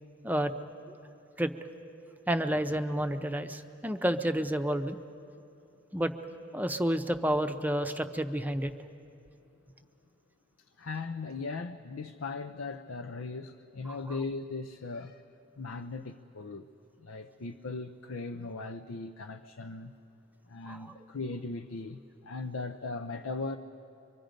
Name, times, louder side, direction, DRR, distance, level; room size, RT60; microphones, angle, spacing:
voice 1, 2.3-5.0 5.9-6.1 6.5-8.7 14.1-14.2 20.7-20.9, equal, 10° right, 7 dB, 0.7 m, -30 dB
voice 2, 10.8-15.2 15.6-16.7 17.0-19.9 20.5-23.6, left 3 dB, 90° left, 6 dB, 0.6 m, -38 dB
25.0 x 24.0 x 5.2 m, 2.7 s
head